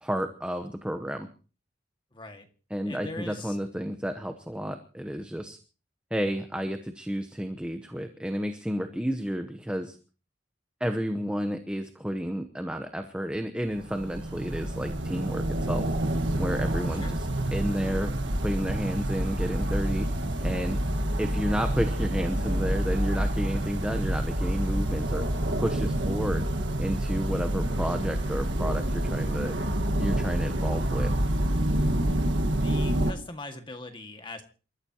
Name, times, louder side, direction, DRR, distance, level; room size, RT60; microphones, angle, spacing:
voice 1, 0.0-1.3 2.7-5.6 6.1-10.0 10.8-15.8 16.4-18.1 18.4-20.1 20.4-20.8 21.2-25.2 25.6-26.5 26.8-29.6 30.0-31.1, equal, 5° right, 6 dB, 0.9 m, -31 dB
voice 2, 2.1-2.5 2.8-3.6 16.8-17.2 32.5-34.4, left 2 dB, 25° left, 6 dB, 1.9 m, -41 dB
sound 1, 13.7-33.1, right 1 dB, 75° right, 1.6 m, -28 dB
28.0 x 14.0 x 2.9 m, 0.36 s
head